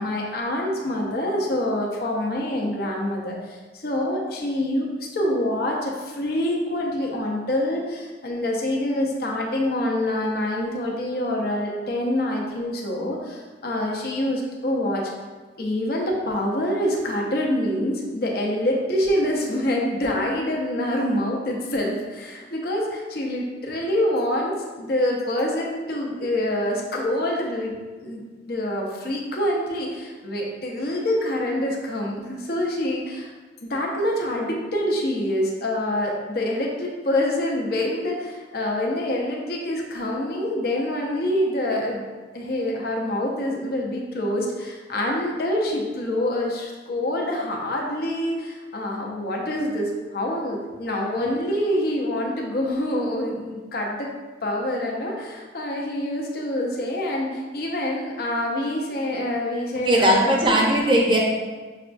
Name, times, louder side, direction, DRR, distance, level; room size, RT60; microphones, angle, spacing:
voice 1, 0.0-4.9 5.1-15.1 15.6-28.2 28.5-33.3 33.6-42.0 42.3-54.1 54.4-60.7, left 1 dB, 55° left, -1 dB, 0.7 m, -26 dB
voice 2, 59.9-61.2, right 1 dB, 25° right, -2 dB, 0.6 m, -18 dB
6.4 x 2.3 x 2.5 m, 1.3 s
head